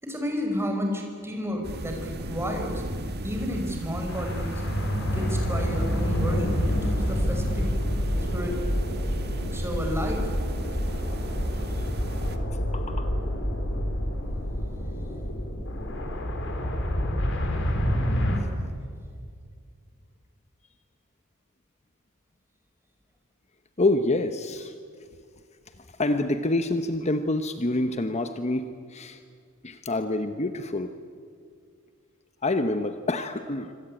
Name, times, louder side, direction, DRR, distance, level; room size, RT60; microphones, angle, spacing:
voice 1, 0.0-2.8 3.2-4.6 5.1-7.7 8.3-8.6 9.5-10.3, equal, 10° right, 2 dB, 5.5 m, -31 dB
sound 1, 1.6-12.4, right 1 dB, 50° right, 2.0 m, -35 dB
sound 2, 4.1-18.4, equal, 65° left, 4.2 m, -28 dB
voice 2, 12.7-13.1 18.3-18.5 23.8-24.7 26.0-29.2 29.6-30.9 32.4-33.7, left 2 dB, 35° left, 8 dB, 1.0 m, -27 dB
26.5 x 25.0 x 8.8 m, 2.1 s
head